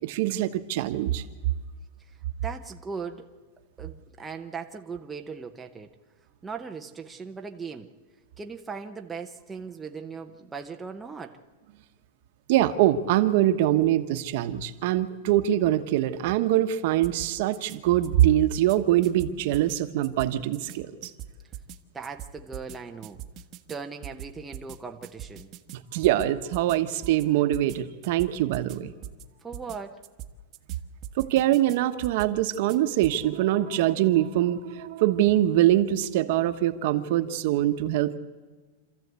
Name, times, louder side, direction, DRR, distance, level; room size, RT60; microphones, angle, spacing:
voice 1, 0.0-1.2 12.5-21.1 25.9-28.9 31.2-38.2, right 13 dB, 55° right, 9 dB, 1.2 m, -23 dB
voice 2, 2.4-3.3 3.8-5.9 6.4-7.9 8.4-11.4 21.9-23.2 23.7-25.5 29.4-30.0, right 5 dB, 10° right, 3 dB, 0.8 m, -38 dB
sound 1, 17.0-17.8 18.0-18.8 19.0-19.8 20.0-20.8 21.0-21.8 22.0-22.8 23.0-23.8 24.0-24.8 25.0-25.8 26.0-26.8 27.0-27.2 27.5-27.8 28.0-28.8 29.0-29.3 29.5-29.8 30.0-30.8 31.0-31.8 32.0-32.8 33.0-33.2, right 11 dB, 30° right, 1.1 m, -41 dB
26.5 x 14.0 x 8.2 m, 1.4 s
supercardioid pair, 160°, 0 cm